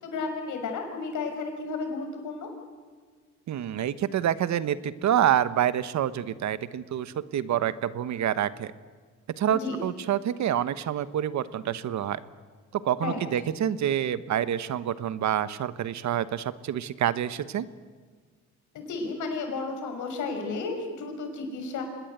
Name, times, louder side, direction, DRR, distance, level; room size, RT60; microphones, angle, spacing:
voice 1, 0.0-2.5 9.5-9.8 13.0-13.2 18.7-21.8, left 4 dB, 80° left, 4 dB, 6.4 m, -33 dB
voice 2, 3.5-8.7 9.4-12.2 12.7-17.7, right 10 dB, 70° right, 14 dB, 1.2 m, -27 dB
27.0 x 20.0 x 8.2 m, 1.5 s
cardioid pair, 90°, 30 cm